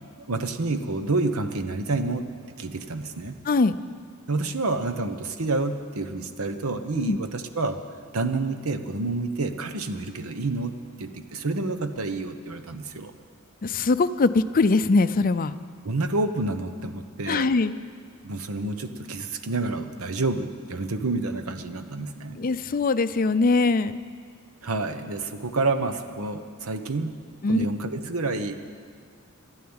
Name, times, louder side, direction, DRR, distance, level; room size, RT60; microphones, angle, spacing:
voice 1, 0.0-2.3 2.6-3.4 4.3-7.8 8.1-10.7 11.0-13.1 15.8-17.5 18.2-22.4 24.6-27.1 27.4-28.6, right 3 dB, 85° right, 9 dB, 1.0 m, -29 dB
voice 2, 3.4-3.8 7.1-7.2 13.6-15.5 17.3-17.8 22.4-24.0 27.4-27.6, left 3 dB, 40° left, 13 dB, 0.5 m, -22 dB
13.0 x 11.5 x 8.8 m, 2.1 s
head